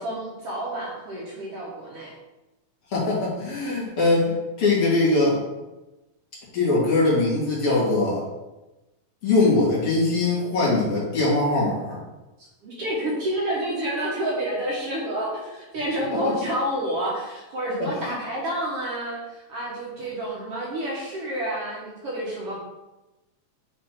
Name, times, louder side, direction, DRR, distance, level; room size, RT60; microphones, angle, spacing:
voice 1, 0.0-2.1 12.6-22.6, right 1 dB, 60° right, -4 dB, 2.0 m, -29 dB
voice 2, 2.9-5.4 6.5-8.2 9.2-12.0 16.1-16.3 17.8-18.1, left 2 dB, 50° left, -7 dB, 2.9 m, -22 dB
8.6 x 3.3 x 4.4 m, 1.0 s
omnidirectional pair, 3.4 m